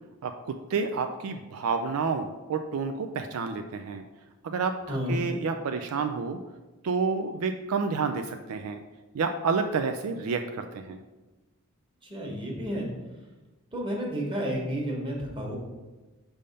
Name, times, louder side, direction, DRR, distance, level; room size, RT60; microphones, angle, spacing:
voice 1, 0.2-4.0 4.4-6.4 6.8-8.8 9.1-11.0, right 5 dB, 70° right, 6 dB, 0.4 m, -29 dB
voice 2, 4.9-5.2 12.0-12.9 13.7-15.6, equal, 20° right, -2 dB, 1.3 m, -31 dB
5.5 x 3.5 x 5.2 m, 1.2 s
head